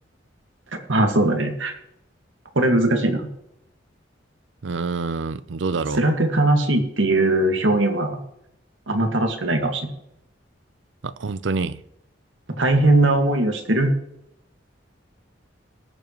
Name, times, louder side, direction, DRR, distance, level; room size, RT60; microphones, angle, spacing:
voice 1, 0.9-1.7 2.6-3.3 6.0-8.2 8.9-9.9 12.6-13.9, right 2 dB, 85° right, 1.8 m, -20 dB
voice 2, 4.6-6.0 11.0-11.8, right 4 dB, 70° right, 0.6 m, -26 dB
19.5 x 7.2 x 3.1 m
head